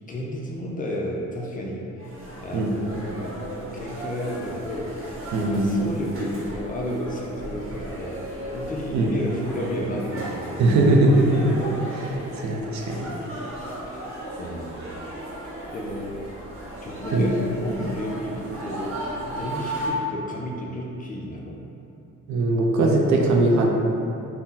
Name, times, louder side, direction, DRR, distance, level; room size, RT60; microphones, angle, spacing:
voice 1, 0.1-1.9 2.4-5.0 5.5-8.2 8.5-10.9 13.6-13.8 14.4-14.9 15.3-16.3 16.8-21.6, equal, 30° left, -1 dB, 0.4 m, -32 dB
sound 1, 2.0-19.9, right 1 dB, 45° right, 0.9 m, -35 dB
voice 2, 5.3-5.8 8.9-9.1 10.6-11.6 11.9-13.0 17.1-17.3 22.3-23.7, right 2 dB, 65° right, 0 dB, 0.5 m, -20 dB
2.7 x 2.0 x 3.6 m, 2.7 s
cardioid pair, 90°, 30 cm